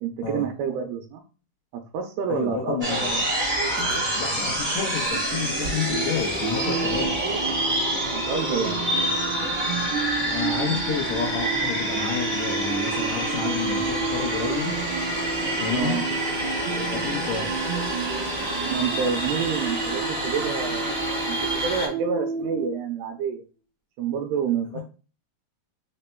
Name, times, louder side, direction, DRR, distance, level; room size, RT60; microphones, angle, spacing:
voice 1, 0.0-1.2 1.7-3.8 7.2-7.5 8.1-8.8 15.7-16.1 18.7-21.4 21.6-23.4 24.0-24.8, right 6 dB, 90° right, 2 dB, 2.6 m, -29 dB
voice 2, 2.3-3.1 4.2-7.2 10.2-14.7 15.6-16.1 16.7-17.5 24.7-24.8, left 6 dB, 85° left, -2 dB, 1.6 m, -30 dB
sound 1, 2.8-21.9, right 1 dB, 5° right, 0.8 m, -27 dB
sound 2, 3.8-5.9 6.2-6.3 6.8-10.0, right 1 dB, 40° right, 1.7 m, -42 dB
sound 3, 5.8-22.7, right 5 dB, 65° right, 1.8 m, -32 dB
5.5 x 4.1 x 2.2 m, 0.34 s
omnidirectional pair, 4.5 m